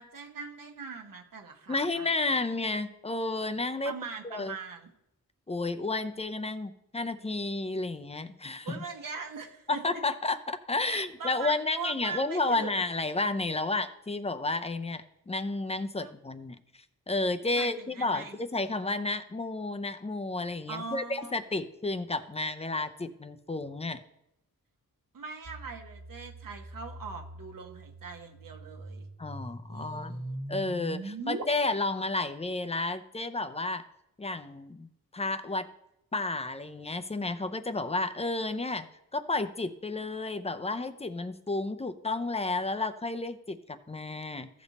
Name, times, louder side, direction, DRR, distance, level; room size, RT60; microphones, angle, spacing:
voice 1, 0.0-2.1 3.8-4.9 8.6-10.0 10.9-12.8 16.0-16.1 17.5-18.4 20.7-21.3 25.1-29.1 29.7-30.4, right 5 dB, 70° right, 3 dB, 1.2 m, -41 dB
voice 2, 1.7-3.9 4.2-4.6 5.5-8.8 9.7-24.0 29.2-30.2 30.5-33.8 34.2-35.7 36.1-38.9 39.1-44.5, left 2 dB, 20° left, 9 dB, 0.6 m, -32 dB
sound 1, 25.5-31.4, right 2 dB, 50° right, 1.5 m, -41 dB
14.5 x 5.3 x 4.1 m, 0.84 s
wide cardioid pair, 100°, 35 cm